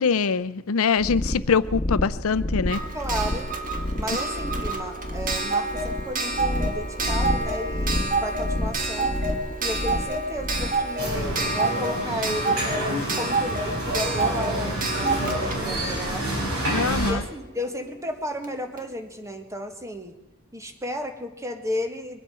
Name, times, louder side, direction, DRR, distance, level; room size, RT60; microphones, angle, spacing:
voice 1, 0.0-2.8 16.7-17.2, left 5 dB, 70° left, 16 dB, 0.6 m, -23 dB
sound 1, 1.0-11.5, left 1 dB, 30° left, 1.7 m, -30 dB
Clock, 2.7-17.3 18.4-18.5 18.8-18.9, right 3 dB, 40° right, 1.7 m, -29 dB
voice 2, 2.9-3.5 3.9-9.1 9.6-16.2 17.0-20.1 20.5-22.2, equal, 15° right, 5 dB, 1.6 m, -33 dB
sound 2, 11.0-17.1, right 1 dB, 75° right, 5.6 m, -28 dB
23.0 x 8.4 x 7.0 m, 0.95 s
head